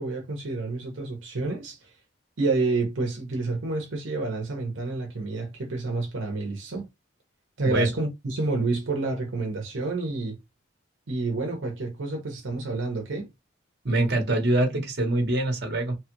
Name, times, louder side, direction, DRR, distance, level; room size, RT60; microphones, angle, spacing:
voice 1, 0.0-1.9 2.4-6.9 7.6-10.4 11.1-13.3, right 3 dB, 85° right, 0.8 m, -29 dB
voice 2, 13.8-15.9, right 2 dB, 55° right, 1.0 m, -24 dB
3.0 x 2.4 x 3.0 m
head